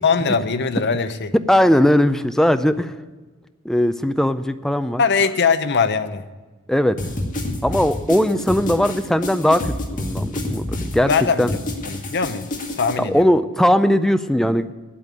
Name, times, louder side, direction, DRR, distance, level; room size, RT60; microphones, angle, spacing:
voice 1, 0.0-1.3 5.0-6.2 11.0-11.6 11.8-12.5 12.8-13.3, left 5 dB, 55° left, 11 dB, 0.7 m, -21 dB
voice 2, 1.5-2.9 3.6-5.0 6.7-7.0 7.6-11.1 11.4-11.5 13.1-14.7, equal, ahead, 10 dB, 0.4 m, -19 dB
sound 1, 7.0-12.9, left 1 dB, 40° left, 1.9 m, -28 dB
9.2 x 8.5 x 9.2 m, 1.3 s
head